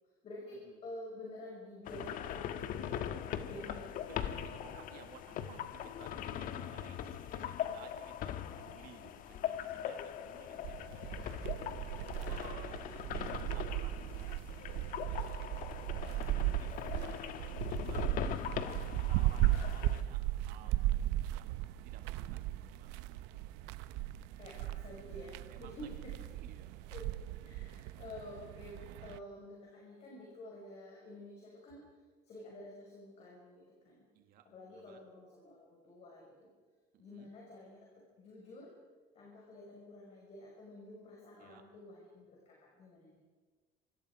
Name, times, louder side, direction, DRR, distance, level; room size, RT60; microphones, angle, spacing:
voice 1, 0.2-3.0 3.3-4.0 19.2-19.6 20.6-21.0 24.3-26.1 26.9-27.1 27.4-31.9 32.3-34.0 34.4-36.5 37.0-38.7 39.1-43.2, left 1 dB, 35° left, -2 dB, 5.8 m, -50 dB
sound 1, 1.9-20.0, left 10 dB, 55° left, 1.5 m, -41 dB
voice 2, 3.5-3.8 4.1-11.5 12.3-14.3 15.1-15.4 16.0-18.2 18.9-20.8 21.3-23.1 25.5-25.7 26.3-26.8 34.1-35.0 37.0-37.3 41.4-41.6, right 9 dB, 55° right, 6 dB, 2.1 m, -57 dB
sound 2, 10.6-29.2, right 15 dB, 80° right, 0.9 m, -37 dB
27.0 x 25.0 x 5.0 m, 1.4 s
cardioid pair, 150°, 17 cm